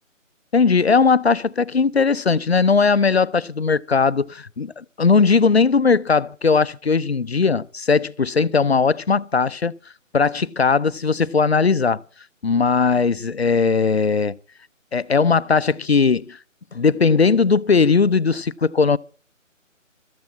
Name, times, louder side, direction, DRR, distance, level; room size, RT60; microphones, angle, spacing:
voice 1, 0.5-9.7 10.1-12.0 12.4-14.4 14.9-16.4 16.7-19.0, left 5 dB, 50° left, 0.6 m, -18 dB
14.0 x 9.3 x 7.4 m
figure-of-eight pair, 175°, 40 cm